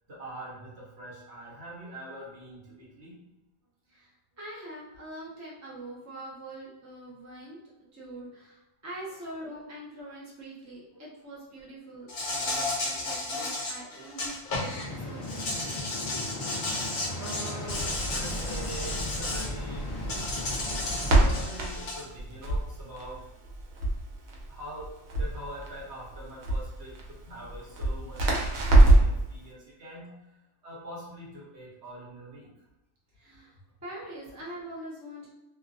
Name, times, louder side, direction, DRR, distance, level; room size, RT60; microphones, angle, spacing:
voice 1, 0.1-3.2 10.9-11.0 12.7-13.1 16.1-20.1 21.1-23.5 24.5-24.9 25.2-32.6, right 1 dB, 55° right, -6 dB, 1.1 m, -44 dB
voice 2, 3.9-7.6 7.9-12.1 12.4-15.5 33.2-33.5 33.8-35.3, right 1 dB, 20° right, -7 dB, 0.5 m, -43 dB
Insect, 12.1-14.8 15.2-19.5 20.1-22.0, left 2 dB, 55° left, 0.6 m, -33 dB
sound 1, 14.6-21.4, left 1 dB, 30° left, 1.0 m, -38 dB
Crackle, 17.7-29.2, right 2 dB, 80° right, 1.1 m, -26 dB
2.5 x 2.3 x 2.6 m, 0.98 s
omnidirectional pair, 1.4 m